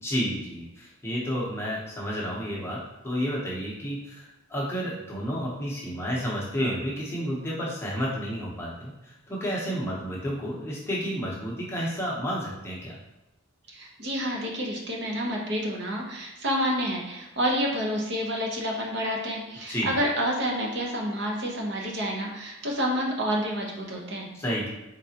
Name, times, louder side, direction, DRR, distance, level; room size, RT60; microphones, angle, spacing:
voice 1, 0.0-2.8 3.0-13.0 19.7-19.9 24.3-24.7, equal, 10° left, -5 dB, 0.7 m, -31 dB
voice 2, 13.7-24.3, equal, 50° right, -1 dB, 0.7 m, -29 dB
4.0 x 3.3 x 2.8 m, 0.98 s
head